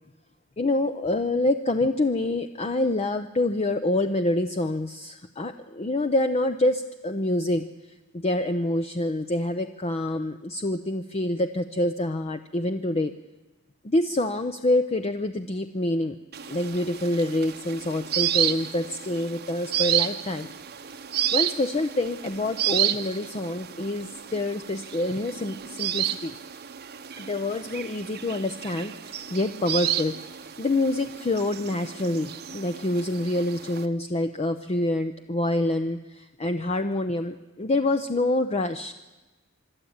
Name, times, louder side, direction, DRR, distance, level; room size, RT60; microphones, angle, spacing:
voice 1, 0.6-7.6 8.1-13.1 13.8-16.2 16.5-20.5 21.3-26.4 27.2-30.1 30.6-38.9, left 1 dB, 30° left, 8 dB, 0.6 m, -26 dB
sound 1, 16.3-33.9, right 11 dB, 50° right, 0.9 m, -31 dB
24.5 x 12.5 x 8.7 m, 1.2 s
head